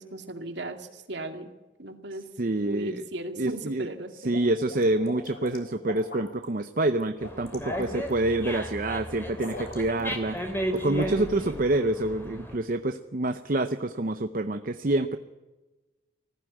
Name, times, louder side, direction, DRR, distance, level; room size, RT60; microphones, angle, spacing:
voice 1, 0.0-1.5 1.8-2.2 2.6-4.5 11.0-11.6, right 1 dB, 60° right, 5 dB, 2.3 m, -37 dB
voice 2, 2.4-2.9 3.4-3.9 4.2-10.4 10.7-15.2, right 2 dB, 45° right, 8 dB, 0.7 m, -27 dB
sound 1, 4.0-6.4 7.0-8.1 9.3-10.1 10.4-11.1, left 1 dB, 50° left, 3.7 m, -41 dB
Dog, 7.2-12.6, equal, 10° left, 2.6 m, -35 dB
20.0 x 15.0 x 9.3 m, 1.1 s
head